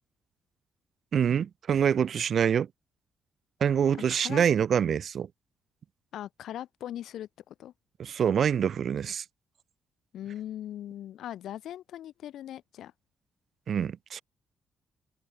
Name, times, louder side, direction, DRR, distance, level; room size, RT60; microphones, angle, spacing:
voice 1, 1.1-2.7 3.6-5.3 8.0-9.2 13.7-14.2, right 8 dB, 45° right, 0.4 m, -25 dB
voice 2, 4.1-4.5 6.1-7.7 10.1-12.9, left 11 dB, 70° left, 0.3 m, -40 dB
cardioid pair, 160°, 0 cm